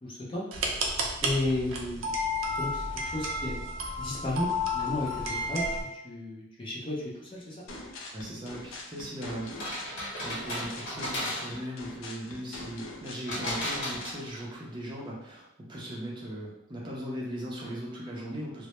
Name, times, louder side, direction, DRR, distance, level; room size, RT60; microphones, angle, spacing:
voice 1, 0.0-0.5 1.2-2.1 2.6-3.6 4.0-7.6, left 1 dB, 25° left, -5 dB, 0.5 m, -33 dB
sound 1, 0.5-5.8, left 1 dB, 85° right, 0.4 m, -31 dB
sound 2, 7.7-14.2, left 2 dB, 80° left, 0.4 m, -43 dB
voice 2, 8.1-9.8 10.2-18.7, equal, 25° right, -4 dB, 0.5 m, -38 dB
sound 3, 9.4-11.8 13.3-14.6, equal, 60° left, 1.1 m, -35 dB
2.1 x 2.1 x 2.8 m, 0.83 s
head